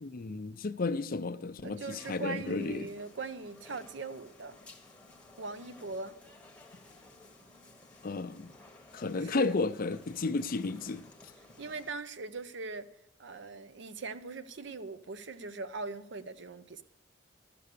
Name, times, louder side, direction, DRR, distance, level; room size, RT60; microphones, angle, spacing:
voice 1, 0.0-2.9 8.0-8.5 8.9-11.0, left 3 dB, 50° left, 0.6 m, -33 dB
voice 2, 1.6-4.6 5.4-6.1 9.1-9.5 11.6-12.9 13.2-16.8, right 3 dB, 65° right, 0.6 m, -41 dB
sound 1, 1.9-11.9, left 2 dB, 5° left, 1.3 m, -56 dB
13.0 x 6.9 x 6.7 m
head